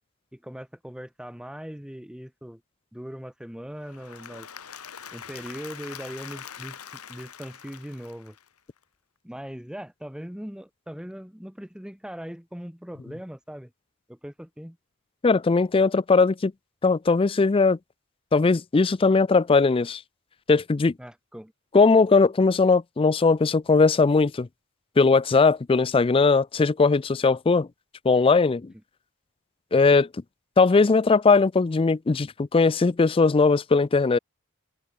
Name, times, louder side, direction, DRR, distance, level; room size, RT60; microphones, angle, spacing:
voice 1, 0.3-2.6 2.9-4.5 5.1-6.8 7.1-8.4 9.2-13.7 14.1-14.8 21.0-21.5, equal, 5° right, 1.1 m, -40 dB
Applause / Crowd, 3.8-8.8, left 8 dB, 80° left, 2.3 m, -43 dB
voice 2, 15.2-16.5 16.8-17.8 18.3-20.0 20.5-20.9 21.7-24.5 25.0-27.7 28.0-28.7 29.7-30.1 30.6-34.2, left 4 dB, 25° left, 0.4 m, -19 dB
head